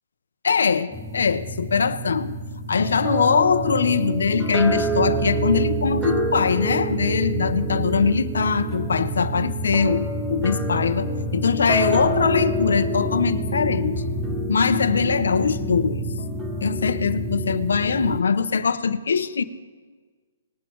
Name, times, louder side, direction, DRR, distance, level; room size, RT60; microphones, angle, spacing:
voice 1, 0.4-2.4 2.7-14.0 14.5-16.0 16.6-19.4, left 5 dB, 85° left, 12 dB, 0.7 m, -22 dB
sound 1, 0.9-18.2, right 1 dB, 5° right, 0.8 m, -27 dB
19.5 x 7.2 x 4.6 m, 1.5 s
hypercardioid pair, 170°, 0 cm